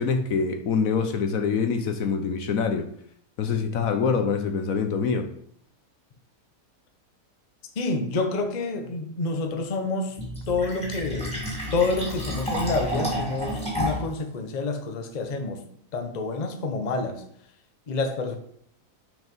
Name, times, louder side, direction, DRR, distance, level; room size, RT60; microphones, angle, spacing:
voice 1, 0.0-2.9 3.4-5.3, left 5 dB, 65° left, 7 dB, 1.1 m, -25 dB
voice 2, 7.8-10.2 10.5-11.4 11.7-15.6 15.9-17.2 17.9-18.4, left 3 dB, 35° left, 6 dB, 0.7 m, -28 dB
Fill (with liquid), 10.2-14.2, equal, 5° left, 3.3 m, -30 dB
6.2 x 5.3 x 5.2 m, 0.66 s
omnidirectional pair, 1.7 m